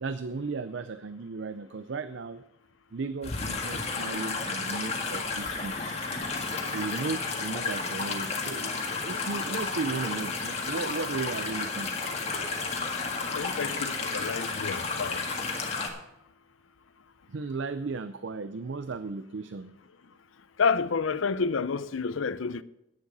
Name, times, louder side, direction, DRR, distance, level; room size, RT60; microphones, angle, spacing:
voice 1, 0.0-2.4 2.9-6.0 6.6-11.9 17.3-19.7, right 4 dB, 70° right, 0.5 m, -35 dB
sound 1, 3.2-15.9, left 4 dB, 30° left, 1.8 m, -32 dB
voice 2, 13.3-15.2 20.6-22.6, left 5 dB, 80° left, 0.6 m, -29 dB
10.5 x 10.0 x 5.4 m
head